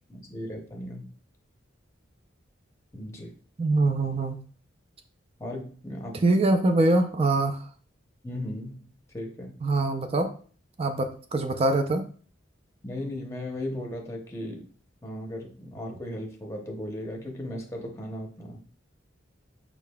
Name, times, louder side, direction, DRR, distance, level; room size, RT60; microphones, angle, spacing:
voice 1, 0.1-1.1 2.9-3.3 5.4-6.2 8.2-8.9 9.1-9.5 12.8-14.7 15.0-18.6, left 1 dB, 15° left, 1 dB, 0.7 m, -36 dB
voice 2, 3.6-4.4 6.2-7.7 9.6-10.3 10.8-12.1, right 2 dB, 30° right, 6 dB, 0.4 m, -23 dB
5.1 x 4.6 x 2.2 m, 0.43 s
head